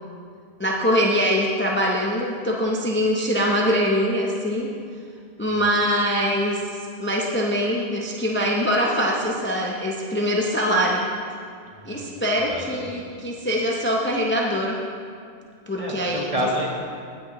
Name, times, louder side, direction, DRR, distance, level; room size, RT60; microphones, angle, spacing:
voice 1, 0.6-4.7 5.4-6.6 7.0-11.1 11.9-14.8 15.7-16.3, equal, 15° left, -2 dB, 0.6 m, -23 dB
voice 2, 5.4-5.7 11.7-12.1 12.5-13.2 15.8-16.7, equal, 35° right, -2 dB, 1.2 m, -30 dB
16.0 x 6.2 x 3.0 m, 2.2 s
omnidirectional pair, 1.1 m